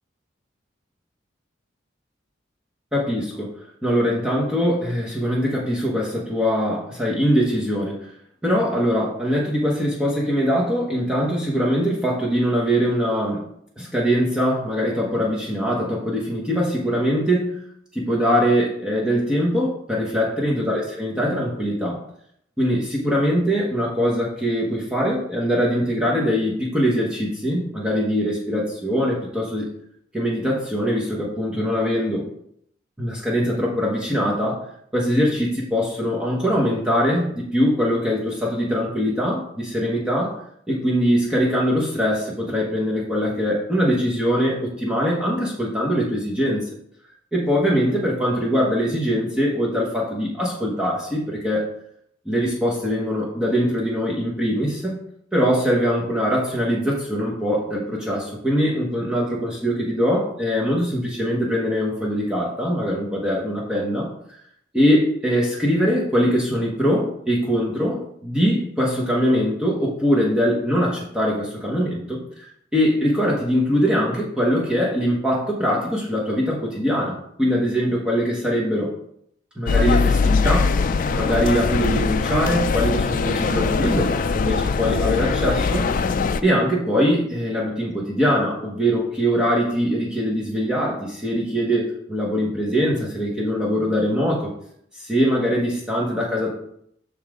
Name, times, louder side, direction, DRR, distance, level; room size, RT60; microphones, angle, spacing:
voice 1, 2.9-3.5 3.8-7.9 8.4-13.4 13.8-17.6 17.9-22.0 22.6-29.7 30.1-32.2 33.0-34.6 34.9-40.4 40.7-46.7 47.3-51.6 52.2-55.0 55.3-64.1 64.7-78.9 79.6-80.8 81.1-85.9 86.4-94.5 94.9-96.5, equal, 5° right, -5 dB, 1.1 m, -22 dB
sound 1, 79.7-86.4, left 4 dB, 45° left, 0.3 m, -21 dB
6.4 x 5.5 x 3.6 m, 0.71 s
head